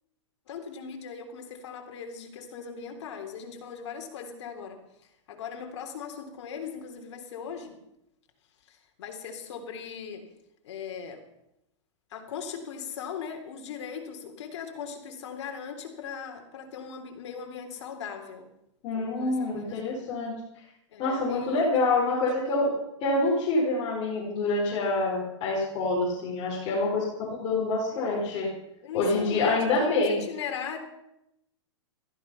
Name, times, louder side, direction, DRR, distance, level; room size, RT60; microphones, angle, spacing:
voice 1, 0.5-4.8 5.3-7.8 8.7-10.3 10.6-11.2 12.1-18.5 18.9-20.0 20.9-21.7 22.1-22.6 26.9-27.0 27.9-28.2 28.8-30.8, left 6 dB, 65° left, 5 dB, 3.6 m, -39 dB
voice 2, 18.8-20.3 21.0-22.7 23.0-28.5 28.9-30.2, left 2 dB, 35° left, -4 dB, 5.2 m, -26 dB
15.5 x 14.5 x 5.7 m, 0.84 s
hypercardioid pair, 140°, 16 cm